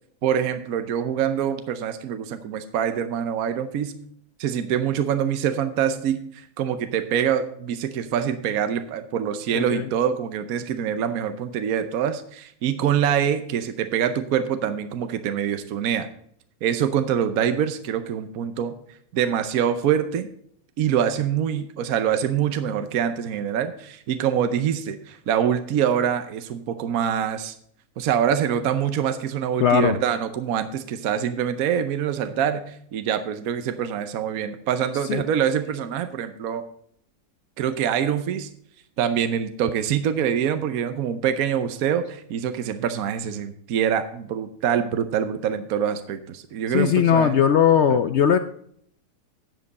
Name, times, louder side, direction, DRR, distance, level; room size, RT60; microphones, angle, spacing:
voice 1, 0.2-3.9 4.4-16.1 16.6-18.8 19.1-20.3 20.8-27.5 28.0-36.6 37.6-38.5 39.0-47.4 47.9-48.0, right 8 dB, 70° right, 10 dB, 1.1 m, -25 dB
voice 2, 9.5-9.9 29.6-30.0 35.1-35.2 46.7-48.4, left 8 dB, 65° left, 10 dB, 0.7 m, -19 dB
11.5 x 7.6 x 4.1 m, 0.65 s
omnidirectional pair, 1.7 m